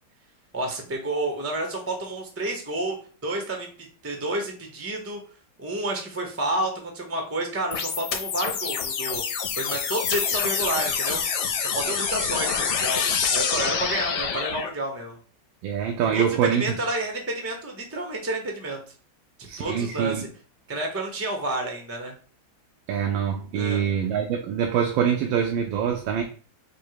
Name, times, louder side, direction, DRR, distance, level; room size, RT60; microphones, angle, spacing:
voice 1, 0.5-3.0 3.2-3.7 4.0-5.2 5.6-11.5 11.7-15.2 16.1-16.2 16.5-18.8 19.6-20.3 20.7-22.1 23.5-23.8, right 1 dB, 20° right, 0.3 m, -30 dB
sound 1, 7.7-14.7, left 6 dB, 85° left, 1.6 m, -26 dB
voice 2, 15.6-16.8 19.5-20.3 22.9-26.2, right 8 dB, 85° right, 1.4 m, -25 dB
5.2 x 2.1 x 4.7 m
omnidirectional pair, 2.1 m